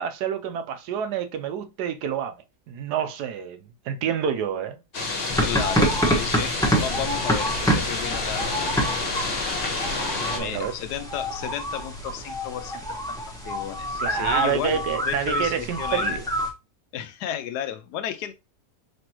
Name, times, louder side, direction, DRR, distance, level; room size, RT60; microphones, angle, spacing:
voice 1, 0.0-4.8 10.3-10.7 14.0-16.2, right 8 dB, 75° right, 1.2 m, -28 dB
sound 1, 4.9-10.4, left 3 dB, 40° left, 1.1 m, -29 dB
sound 2, 5.3-16.5, equal, 5° left, 0.9 m, -27 dB
voice 2, 5.4-8.9 9.2-9.3 10.3-14.8 15.1-16.1 16.9-18.3, left 10 dB, 75° left, 1.1 m, -33 dB
5.2 x 3.3 x 3.0 m
omnidirectional pair, 1.8 m